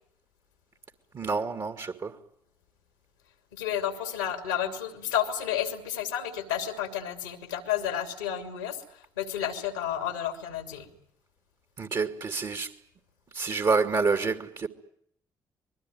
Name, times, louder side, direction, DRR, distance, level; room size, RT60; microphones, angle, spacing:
voice 1, 1.1-2.2 11.8-12.7 13.3-14.7, right 4 dB, 45° right, 2.4 m, -28 dB
voice 2, 3.5-10.9, left 10 dB, 90° left, 2.8 m, -31 dB
25.5 x 21.5 x 9.4 m
hypercardioid pair, 40°, 9 cm